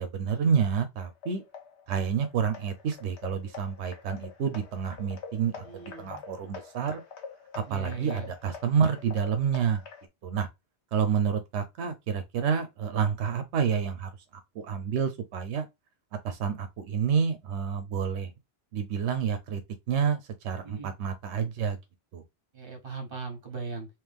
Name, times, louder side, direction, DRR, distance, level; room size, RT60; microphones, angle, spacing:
voice 1, 0.0-1.4 1.9-5.6 6.0-7.0 7.5-9.8 10.2-10.5 10.9-14.1 14.6-15.7 16.2-18.3 18.7-19.6 19.9-21.8 22.1-22.2, right 7 dB, 90° right, 0.9 m, -28 dB
sound 1, 1.0-10.1, left 6 dB, 90° left, 1.1 m, -46 dB
voice 2, 5.6-6.2 7.7-8.3 20.6-20.9 22.5-23.9, right 4 dB, 55° right, 1.4 m, -39 dB
3.2 x 2.9 x 3.5 m
omnidirectional pair, 1.1 m